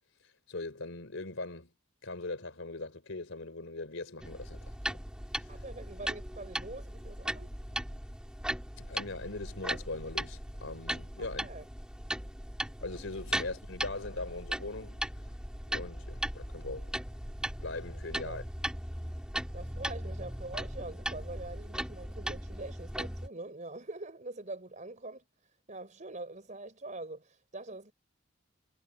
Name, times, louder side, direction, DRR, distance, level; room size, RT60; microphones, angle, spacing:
voice 1, 0.5-1.7 2.0-4.7 8.8-11.5 12.8-15.0 15.7-16.9 17.6-18.4, left 2 dB, 80° left, 3.6 m, -40 dB
sound 1, 4.2-23.3, right 1 dB, 5° right, 2.3 m, -38 dB
voice 2, 5.5-7.5 11.2-11.7 18.2-18.5 19.5-25.2 25.7-27.9, right 2 dB, 40° right, 4.7 m, -44 dB
head